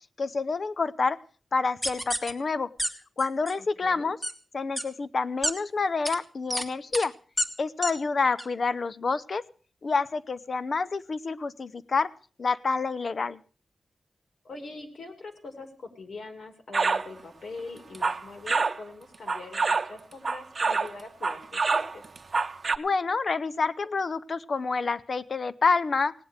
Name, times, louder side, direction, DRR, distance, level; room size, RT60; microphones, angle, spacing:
voice 1, 0.2-1.2 1.5-2.7 3.2-4.2 4.5-7.1 7.6-9.4 9.8-12.1 12.4-13.4 22.8-26.1, left 4 dB, 45° left, 15 dB, 0.6 m, -28 dB
sound 1, 1.8-2.3 2.8-2.9 3.2-3.5 4.2-4.3 4.8-4.9 5.4-5.5 6.0-6.2 6.5-6.6 6.9-7.1 7.4-7.5 7.8-7.9 8.4-8.5, equal, 10° left, 1.6 m, -28 dB
voice 2, 3.6-4.1 14.4-22.0, left 3 dB, 65° left, 5 dB, 2.7 m, -43 dB
sound 2, 16.7-17.1 17.8-18.8 19.3-20.9 21.2-22.8, right 4 dB, 35° right, 0.9 m, -26 dB
17.5 x 9.9 x 6.4 m, 0.42 s
wide cardioid pair, 175°, 0 cm